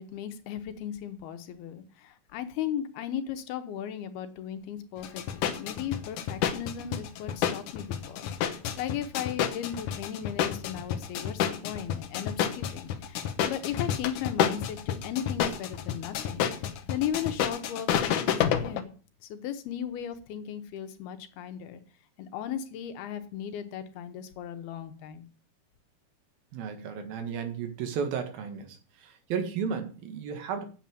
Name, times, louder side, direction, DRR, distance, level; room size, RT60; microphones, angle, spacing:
voice 1, 0.0-18.9 19.2-21.8 22.2-25.3, left 9 dB, 90° left, 9 dB, 3.1 m, -36 dB
sound 1, 5.0-18.8, left 9 dB, 65° left, 2.3 m, -30 dB
voice 2, 26.5-30.6, right 6 dB, 75° right, 7 dB, 3.5 m, -34 dB
9.1 x 7.3 x 8.5 m, 0.38 s
omnidirectional pair, 4.3 m